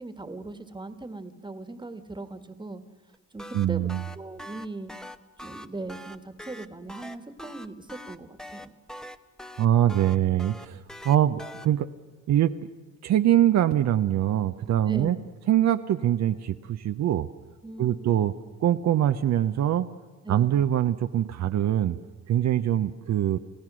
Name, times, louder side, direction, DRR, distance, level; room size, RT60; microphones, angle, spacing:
voice 1, 0.0-2.8 3.3-3.9 4.1-4.9 5.4-8.7 14.9-15.1 17.6-18.1 20.2-20.5, right 2 dB, 15° right, 10 dB, 1.6 m, -39 dB
sound 1, 3.1-11.7, left 1 dB, ahead, 0.9 m, -42 dB
voice 2, 3.5-4.0 9.6-11.9 12.3-12.5 13.0-15.2 15.5-17.3 17.8-18.3 18.6-19.9 20.3-22.0 22.3-23.4, right 11 dB, 65° right, 9 dB, 0.7 m, -23 dB
28.5 x 15.5 x 6.2 m, 1.3 s
cardioid pair, 90°, 30 cm